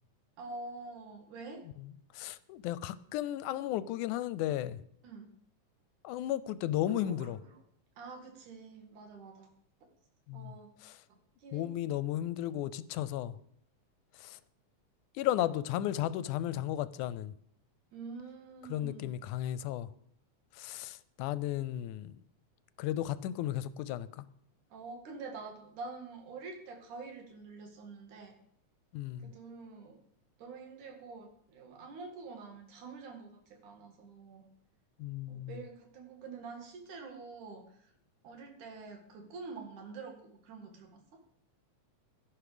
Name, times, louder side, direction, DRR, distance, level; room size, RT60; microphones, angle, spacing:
voice 1, 0.4-1.7 5.0-5.3 6.9-7.6 8.0-9.5 9.8-9.9 10.3-10.7 11.4-11.7 17.9-19.2 24.7-28.4 29.2-30.0 30.4-34.4 35.3-37.7 38.2-41.2, right 4 dB, 75° right, 4 dB, 3.4 m, -46 dB
voice 2, 2.1-4.8 6.0-7.4 10.3-10.5 10.8-11.0 11.5-13.3 14.2-14.4 15.2-17.3 18.7-19.9 20.6-22.2 22.8-24.2 28.9-29.3 35.0-35.5, left 13 dB, 85° left, 16 dB, 2.0 m, -34 dB
11.5 x 11.0 x 5.0 m, 0.67 s
omnidirectional pair, 3.5 m